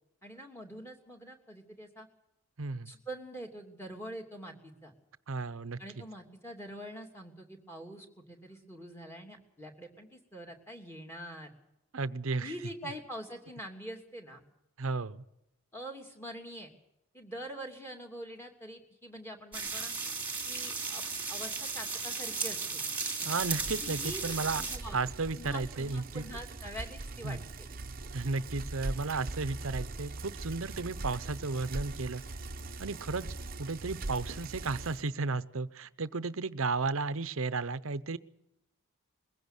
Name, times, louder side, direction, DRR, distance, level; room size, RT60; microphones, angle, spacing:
voice 1, 0.2-2.1 2.8-4.9 5.8-11.5 12.4-14.4 15.7-16.7 17.1-19.9 20.5-21.0 21.3-22.8 23.8-24.2 24.6-25.0 25.3-27.7, equal, 10° left, 2 dB, 2.8 m, -44 dB
voice 2, 2.6-2.9 5.3-5.8 11.9-12.5 14.8-15.2 23.2-24.6 24.9-26.2 27.2-27.4 28.1-32.2 32.8-33.3 33.6-38.2, right 3 dB, 70° right, 15 dB, 0.8 m, -34 dB
sound 1, 19.5-24.8, right 4 dB, 10° right, 2.5 m, -35 dB
Bicycle, 23.4-35.1, right 2 dB, 40° right, 0.8 m, -41 dB
21.5 x 16.0 x 8.1 m, 0.89 s
head